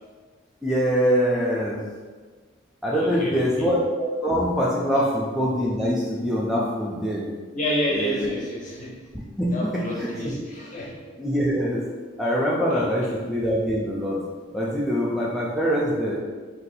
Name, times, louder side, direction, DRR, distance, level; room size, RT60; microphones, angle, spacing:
voice 1, 0.6-1.8 2.8-7.3 7.9-8.3 9.4-10.3 11.2-11.8 12.2-14.2 14.5-16.2, equal, ahead, -6 dB, 0.3 m, -24 dB
voice 2, 2.9-3.7 7.5-9.0 9.5-11.0 12.7-12.8, left 1 dB, 40° left, -4 dB, 0.7 m, -29 dB
2.7 x 2.3 x 4.0 m, 1.4 s
head